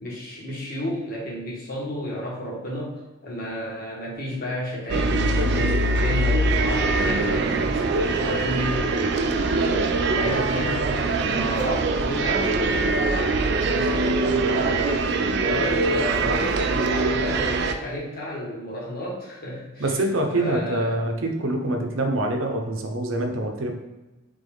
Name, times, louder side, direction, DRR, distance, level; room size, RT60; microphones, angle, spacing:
voice 1, 0.0-9.1 10.1-15.0 15.4-19.9 20.3-21.0, equal, 45° left, -5 dB, 1.3 m, -32 dB
sound 1, 4.9-17.7, right 3 dB, 50° right, 0.3 m, -23 dB
voice 2, 19.8-23.7, right 1 dB, 75° right, 3 dB, 0.7 m, -25 dB
3.8 x 3.6 x 3.5 m, 1.1 s
head